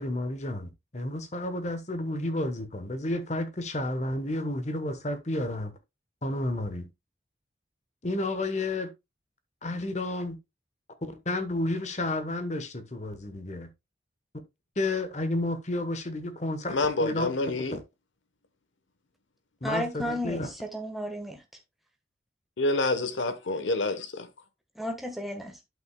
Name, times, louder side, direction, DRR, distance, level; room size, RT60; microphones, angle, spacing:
voice 1, 0.0-5.7 6.2-6.9 8.0-8.9 9.6-10.4 11.0-13.7 14.8-17.3 17.7-17.8 19.6-20.5, left 2 dB, 35° left, 1.0 m, -31 dB
voice 2, 16.7-17.8 22.6-24.3, left 2 dB, 90° left, 1.0 m, -27 dB
voice 3, 19.6-21.4 24.8-25.6, equal, ahead, 1.2 m, -33 dB
11.5 x 5.7 x 2.2 m
head